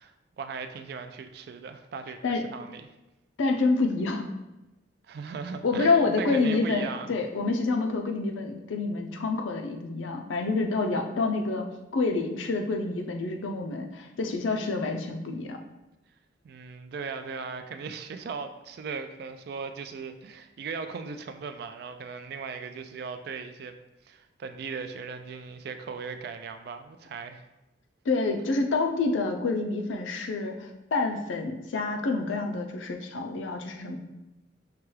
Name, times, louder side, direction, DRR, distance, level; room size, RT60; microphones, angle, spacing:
voice 1, 0.0-2.9 5.0-7.2 16.4-23.8 24.0-27.4, right 5 dB, 55° right, 8 dB, 0.3 m, -38 dB
voice 2, 3.4-4.2 5.6-11.7 11.9-15.6 28.1-34.0, left 3 dB, 90° left, 4 dB, 0.5 m, -27 dB
5.7 x 2.3 x 3.2 m, 0.99 s
head